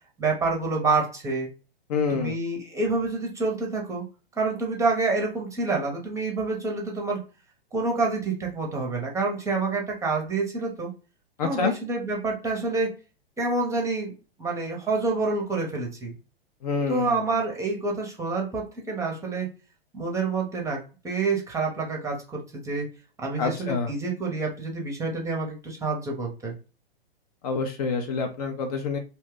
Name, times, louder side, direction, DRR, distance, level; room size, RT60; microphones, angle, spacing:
voice 1, 0.2-1.5 2.1-4.0 4.4-7.2 7.7-10.9 11.4-12.9 13.4-14.1 14.4-16.1 16.9-19.5 19.9-22.9 23.2-26.6, right 3 dB, 10° right, 1 dB, 0.7 m, -27 dB
voice 2, 1.9-2.4 11.4-11.7 16.6-17.2 23.4-23.9 27.4-29.0, left 4 dB, 40° left, 4 dB, 0.5 m, -27 dB
2.7 x 2.1 x 3.6 m, 0.33 s
figure-of-eight pair, 105°, 30 cm